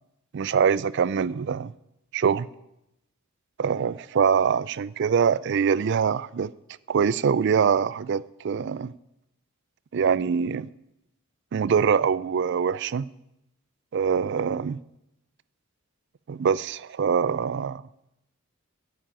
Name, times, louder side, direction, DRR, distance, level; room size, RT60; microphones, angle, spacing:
voice 1, 0.3-1.7 2.1-2.5 3.6-6.5 6.9-8.9 9.9-10.7 11.5-13.0 13.9-14.8 16.3-17.8, right 6 dB, 50° right, 0.3 m, -24 dB
10.0 x 7.4 x 8.9 m
head